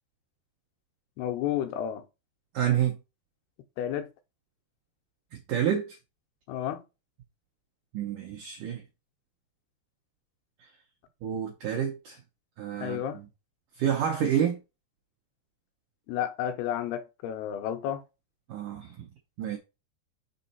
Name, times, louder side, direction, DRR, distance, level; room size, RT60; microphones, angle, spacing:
voice 1, 1.2-2.0 3.8-4.1 6.5-6.8 12.8-13.2 16.1-18.0, left 10 dB, 80° left, 2.7 m, -31 dB
voice 2, 2.5-3.0 5.5-6.0 7.9-8.8 11.2-12.2 12.6-13.2 13.8-14.6 18.5-19.1 19.4-19.6, right 9 dB, 80° right, 1.8 m, -28 dB
6.3 x 3.8 x 4.3 m
omnidirectional pair, 4.8 m